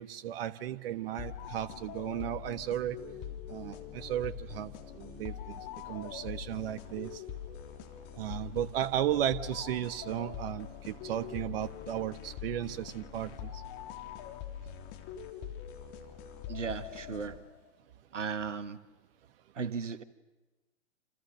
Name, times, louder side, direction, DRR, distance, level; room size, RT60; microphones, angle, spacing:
voice 1, 0.0-3.0 3.5-7.2 8.2-13.6, right 11 dB, 50° right, 10 dB, 1.4 m, -35 dB
sound 1, 1.2-17.7, left 9 dB, 35° left, 3.2 m, -43 dB
voice 2, 16.5-17.4 18.1-18.8 19.5-20.0, right 5 dB, 80° right, 11 dB, 1.6 m, -36 dB
28.5 x 28.0 x 6.7 m, 1.1 s
figure-of-eight pair, 110°, 36 cm